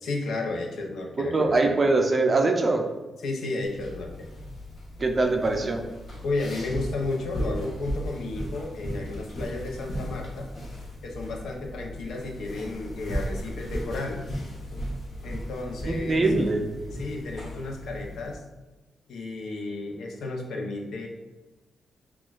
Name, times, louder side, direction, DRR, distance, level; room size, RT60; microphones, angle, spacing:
voice 1, 0.0-1.5 3.2-4.3 6.2-10.5 11.0-14.2 15.2-16.3 16.9-18.4 19.1-21.1, left 2 dB, 80° left, 1 dB, 0.6 m, -33 dB
voice 2, 1.2-2.8 5.0-5.8 15.9-16.7, right 2 dB, 30° right, 4 dB, 0.4 m, -23 dB
sound 1, 3.6-18.3, equal, 50° left, 1.1 m, -36 dB
5.9 x 2.3 x 2.4 m, 1.1 s
wide cardioid pair, 140°, 0 cm